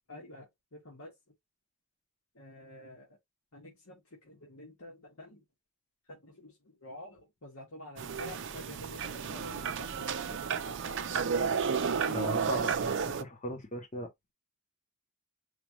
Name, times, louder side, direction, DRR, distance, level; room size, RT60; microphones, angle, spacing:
voice 1, 0.1-1.1 2.3-3.2 3.5-5.4 6.1-10.8, left 1 dB, 80° left, 1.8 m, -49 dB
sound 1, 8.0-13.2, right 6 dB, 55° right, 0.5 m, -32 dB
voice 2, 12.1-14.1, left 1 dB, 35° left, 0.9 m, -38 dB
4.9 x 2.5 x 3.0 m
head